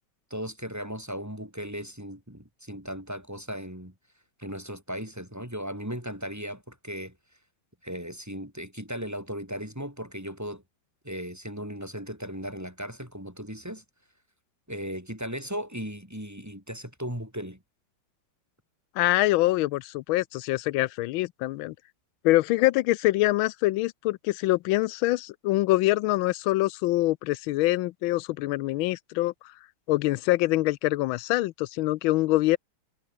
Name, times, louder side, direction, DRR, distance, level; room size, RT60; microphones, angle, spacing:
voice 1, 0.3-3.9 4.4-7.1 7.8-10.6 11.0-13.8 14.7-17.6, equal, 10° right, 4.6 m, -37 dB
voice 2, 19.0-21.7 22.2-29.3 29.9-32.6, left 18 dB, 90° left, 1.4 m, -24 dB
omnidirectional pair, 2.1 m